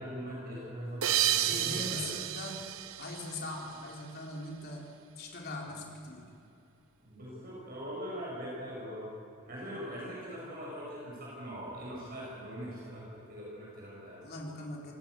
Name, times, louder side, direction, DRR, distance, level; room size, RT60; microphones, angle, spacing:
voice 1, 0.0-2.1 7.0-9.1 9.5-14.2, equal, 45° right, -5 dB, 7.7 m, -41 dB
sound 1, 1.0-4.1, right 11 dB, 75° right, 0.9 m, -32 dB
voice 2, 1.4-2.7 3.0-4.8 5.2-6.3 14.2-14.9, left 2 dB, 45° left, -1 dB, 4.2 m, -41 dB
26.0 x 19.5 x 7.0 m, 2.7 s
head